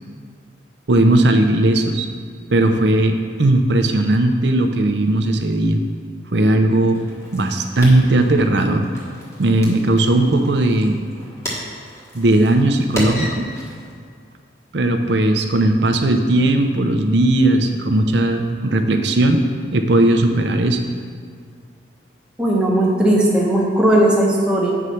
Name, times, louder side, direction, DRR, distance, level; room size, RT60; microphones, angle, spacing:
voice 1, 0.9-2.1 2.5-5.8 6.3-7.0 7.3-8.9 9.4-11.0 12.1-13.5 14.7-19.4 19.7-20.8, right 1 dB, 70° right, 5 dB, 0.7 m, -17 dB
sound 1, 6.9-13.9, equal, 15° left, 1.5 m, -33 dB
voice 2, 22.4-24.7, right 1 dB, 5° right, -4 dB, 1.1 m, -16 dB
7.9 x 4.8 x 5.7 m, 2.1 s
head